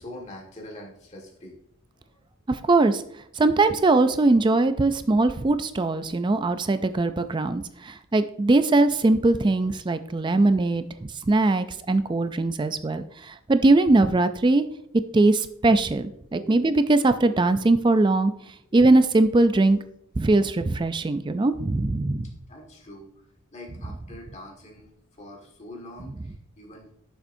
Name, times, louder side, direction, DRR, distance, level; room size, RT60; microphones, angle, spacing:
voice 1, 0.0-1.5 16.0-16.1 16.3-16.6 17.3-17.4 22.5-23.1 23.5-24.9 25.2-26.1 26.6-26.9, left 1 dB, 30° left, 0 dB, 1.7 m, -43 dB
voice 2, 2.5-3.0 3.4-10.8 11.3-14.7 15.1-18.3 18.7-19.8 20.2-22.3, right 2 dB, 20° right, 10 dB, 0.4 m, -21 dB
11.5 x 6.8 x 2.7 m, 0.71 s
head